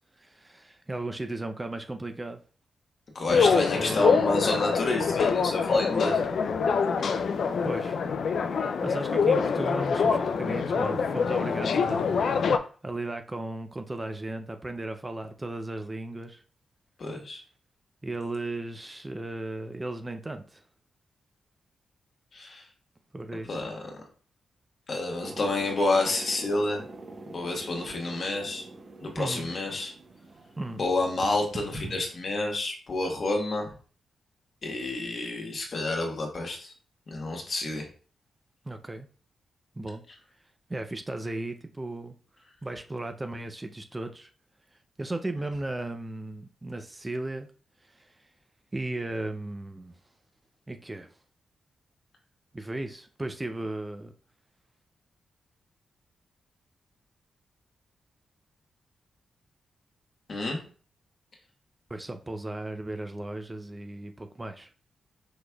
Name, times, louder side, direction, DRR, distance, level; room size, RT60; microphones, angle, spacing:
voice 1, 0.2-2.4 3.3-4.2 7.6-8.0 8.8-16.4 18.0-20.6 23.1-23.7 29.2-29.5 30.6-30.9 38.6-39.1 39.8-40.0 40.7-42.1 42.6-44.3 45.0-47.5 47.9-48.3 48.7-49.9 50.7-51.1 52.5-54.1 61.9-64.7, right 2 dB, 20° right, 0.5 m, -36 dB
voice 2, 3.1-6.2 17.0-17.4 22.3-22.6 23.5-23.8 24.9-26.8 27.3-28.6 29.0-29.9 30.8-33.7 34.6-36.7 37.1-37.9 60.3-60.6, left 2 dB, 50° left, 1.4 m, -29 dB
sound 1, 3.3-12.6, left 5 dB, 70° left, 0.4 m, -25 dB
pot lid rocking, 25.2-32.2, right 2 dB, 45° right, 0.8 m, -44 dB
4.8 x 4.2 x 2.3 m
cardioid pair, 80°, 0 cm